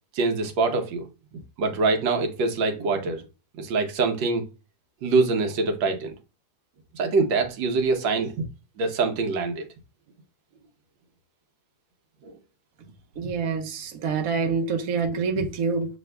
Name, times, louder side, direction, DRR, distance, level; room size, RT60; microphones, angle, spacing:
voice 1, 0.1-1.1 1.6-3.2 3.6-4.5 5.0-6.1 6.9-8.4 8.8-9.6 12.2-12.4, right 3 dB, 90° right, 1.6 m, -24 dB
voice 2, 13.2-15.9, right 5 dB, 55° right, 1.2 m, -26 dB
7.1 x 3.3 x 2.2 m
omnidirectional pair, 2.0 m